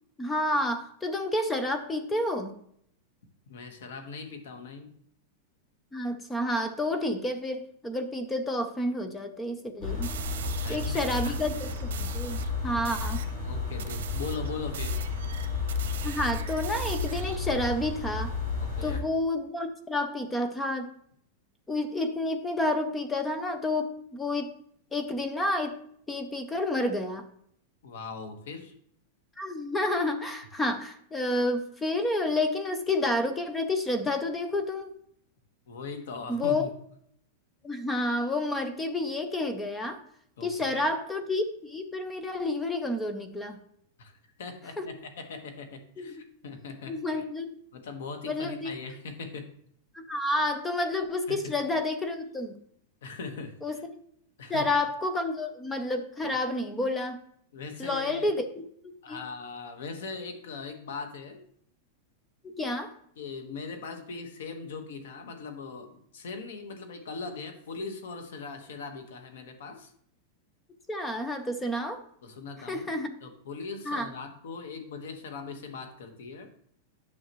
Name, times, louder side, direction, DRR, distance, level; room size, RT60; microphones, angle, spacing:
voice 1, 0.2-2.5 5.9-10.1 10.7-13.2 16.0-18.3 18.8-20.9 21.7-24.6 24.9-25.8 26.1-27.3 29.4-34.9 36.3-36.6 37.6-40.0 40.4-43.6 44.8-44.9 46.0-46.3 46.9-47.5 48.2-48.7 49.9-52.5 53.6-53.8 54.5-57.2 57.8-58.4 58.8-59.2 62.4-62.9 70.9-72.0 72.7-73.2 73.9-74.1, left 1 dB, 10° left, 8 dB, 0.5 m, -30 dB
voice 2, 3.5-4.9 10.4-11.3 13.4-15.0 18.6-19.0 27.8-28.7 35.7-36.7 40.4-40.8 44.0-47.2 47.7-49.5 51.3-51.4 53.0-53.8 54.4-54.7 57.5-58.3 59.0-61.4 63.2-69.9 72.2-72.9 73.2-76.5, left 4 dB, 80° left, 7 dB, 1.3 m, -40 dB
sound 1, 9.8-19.0, left 4 dB, 30° left, 2.1 m, -32 dB
sound 2, 10.0-12.5 12.8-13.3 13.8-17.5, right 10 dB, 85° right, 0.8 m, -42 dB
9.8 x 5.7 x 3.0 m, 0.66 s
supercardioid pair, 170°, 0 cm